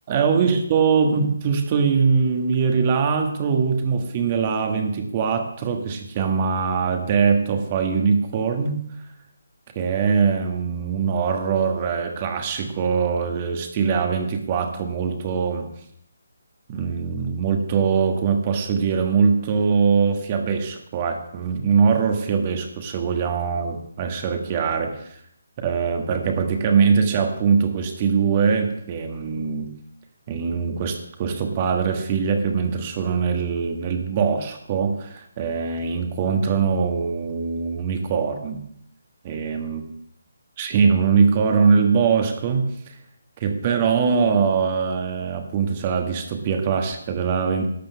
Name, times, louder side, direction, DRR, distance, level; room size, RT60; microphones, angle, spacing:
voice 1, 0.1-8.8 9.7-15.7 16.7-25.2 25.6-29.7 30.3-38.6 39.2-39.8 40.6-42.9 43.4-47.7, right 5 dB, 30° right, 5 dB, 1.4 m, -22 dB
12.0 x 5.3 x 6.9 m, 0.72 s
figure-of-eight pair, 155°, 0 cm